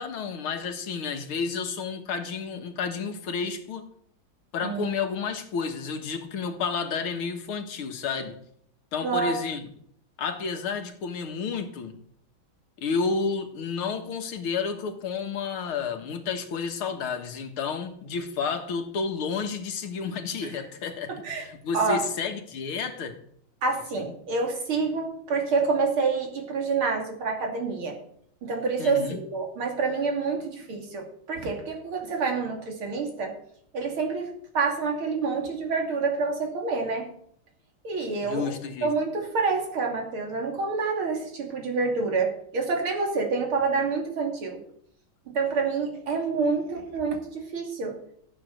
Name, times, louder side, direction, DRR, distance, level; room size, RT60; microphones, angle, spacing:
voice 1, 0.0-3.9 4.5-8.4 8.9-9.6 10.2-12.0 12.8-23.2 24.0-24.1 28.8-29.2 38.2-38.9, left 5 dB, 80° left, 6 dB, 2.4 m, -31 dB
voice 2, 9.0-9.3 21.2-21.5 21.7-22.0 23.6-28.0 28.4-33.3 33.7-37.1 37.8-38.5 38.8-44.6 45.3-48.0, right 4 dB, 80° right, 2 dB, 3.6 m, -27 dB
14.5 x 8.7 x 6.5 m, 0.66 s
omnidirectional pair, 2.3 m